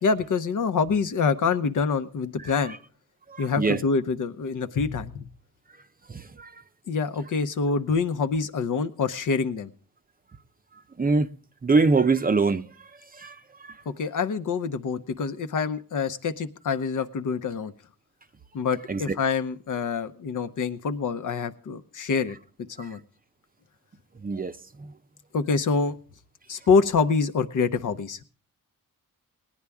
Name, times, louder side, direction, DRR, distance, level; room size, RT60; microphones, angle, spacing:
voice 1, 0.0-2.8 3.4-5.3 6.9-9.7 13.9-17.7 18.5-22.4 22.8-23.0 25.3-26.0 26.5-28.2, left 5 dB, 65° left, 0.9 m, -26 dB
voice 2, 3.3-3.8 6.1-6.5 11.0-11.3 11.6-12.7 13.2-13.4 18.9-19.2 24.2-24.5, right 4 dB, 25° right, 0.6 m, -23 dB
19.0 x 9.9 x 3.5 m
cardioid pair, 90°, 34 cm